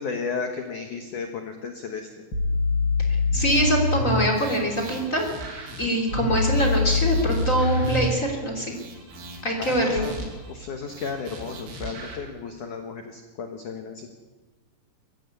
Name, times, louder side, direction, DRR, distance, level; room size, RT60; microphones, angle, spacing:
voice 1, 0.0-2.1 9.6-14.1, left 5 dB, 75° left, 5 dB, 1.8 m, -34 dB
sound 1, 2.3-4.3 6.1-8.1 10.0-10.1, left 3 dB, 30° right, 2.8 m, -24 dB
voice 2, 3.3-5.2 5.8-8.8 9.4-10.1, equal, 20° left, 2 dB, 2.4 m, -24 dB
sound 2, 3.5-4.0 4.3-6.2 6.5-8.3 8.7-10.5 10.9-12.2, right 2 dB, 80° right, 5.6 m, -39 dB
21.5 x 15.0 x 8.2 m, 1.3 s
omnidirectional pair, 5.7 m